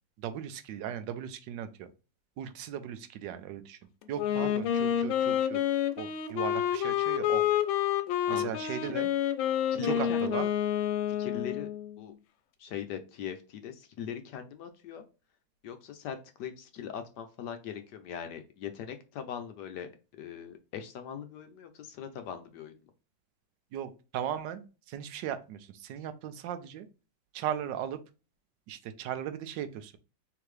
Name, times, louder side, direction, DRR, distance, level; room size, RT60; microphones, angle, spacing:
voice 1, 0.2-1.9 2.4-3.8 4.1-5.6 6.0-7.4 8.3-9.1 9.8-10.5 23.7-26.9 27.3-28.0 28.7-30.0, right 9 dB, 75° right, 10 dB, 1.2 m, -37 dB
Wind instrument woodwind instrument, 4.2-11.9, left 10 dB, 85° left, 1.4 m, -29 dB
voice 2, 8.3-8.9 9.7-10.5 11.1-11.7 12.0-12.1 12.6-15.0 15.6-19.9 20.2-22.8, left 8 dB, 70° left, 8 dB, 1.2 m, -40 dB
3.9 x 3.4 x 3.1 m, 0.31 s
omnidirectional pair, 2.1 m